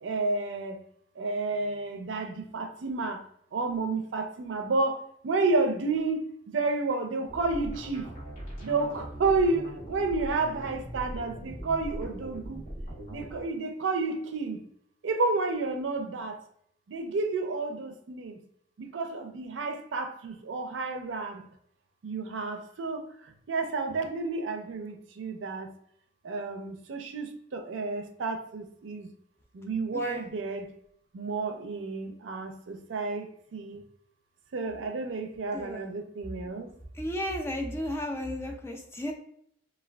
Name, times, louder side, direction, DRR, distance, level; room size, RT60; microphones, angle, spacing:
voice 1, 0.0-0.8 1.2-3.2 3.5-8.1 8.6-12.6 13.1-14.6 15.0-16.4 16.9-18.4 18.8-21.5 22.0-23.1 23.5-25.7 26.2-29.1 29.5-30.7 31.1-33.8 34.5-36.7, right 3 dB, 85° right, 0.4 m, -31 dB
sound 1, 7.3-13.4, right 1 dB, 40° left, 1.1 m, -40 dB
voice 2, 29.9-30.3 35.5-35.9 36.9-39.1, left 1 dB, 15° left, 0.3 m, -34 dB
3.3 x 2.2 x 2.2 m
head